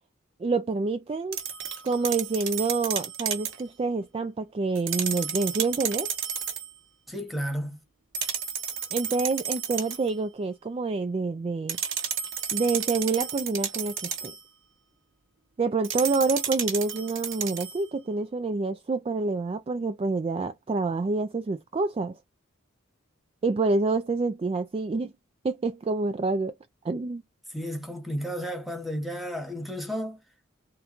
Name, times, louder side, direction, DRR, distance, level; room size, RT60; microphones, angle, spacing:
voice 1, 0.4-1.4 1.8-6.1 8.9-11.8 12.5-14.3 15.6-22.1 23.4-25.1 25.4-26.5 26.8-27.2, right 3 dB, 30° right, 0.3 m, -27 dB
sound 1, 1.3-3.6 4.7-6.7 8.1-10.1 11.7-14.4 15.8-17.8, right 8 dB, 65° right, 1.1 m, -32 dB
voice 2, 7.1-7.8 27.5-30.2, equal, ahead, 1.2 m, -32 dB
3.9 x 2.3 x 4.3 m
head